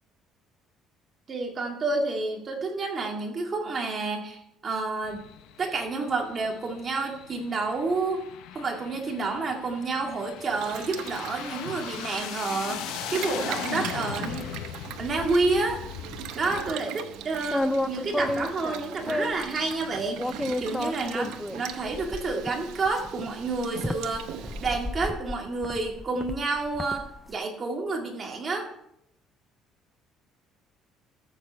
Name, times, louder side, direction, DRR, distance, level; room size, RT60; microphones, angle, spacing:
voice 1, 1.3-5.2 5.6-8.2 8.5-12.8 13.1-14.5 15.0-15.9 16.3-24.3 24.6-28.7, right 3 dB, 25° right, 1 dB, 2.0 m, -29 dB
sound 1, 5.0-16.7, left 11 dB, 80° left, 0.7 m, -39 dB
Boiling, 10.4-24.9, right 10 dB, 85° right, 0.8 m, -40 dB
sound 2, 17.4-19.5 20.2-27.2, left 1 dB, 5° left, 0.4 m, -31 dB
13.5 x 7.3 x 4.5 m, 0.76 s
cardioid pair, 155°, 0 cm